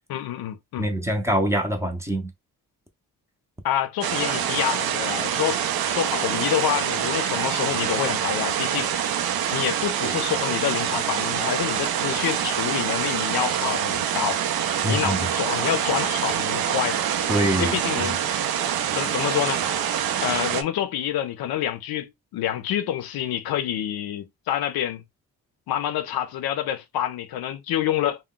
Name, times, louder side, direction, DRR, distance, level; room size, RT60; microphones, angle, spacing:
voice 1, 0.1-0.9 3.6-5.7 6.0-8.9 9.5-14.4 14.9-17.0 17.6-18.2 19.0-19.8 20.2-25.0 25.7-28.2, left 11 dB, 80° left, 0.5 m, -27 dB
voice 2, 0.8-2.3 14.8-15.2 17.3-17.8, right 1 dB, 10° right, 0.6 m, -24 dB
sound 1, 4.0-20.6, right 9 dB, 75° right, 0.5 m, -25 dB
2.3 x 2.2 x 3.6 m
cardioid pair, 125°, 36 cm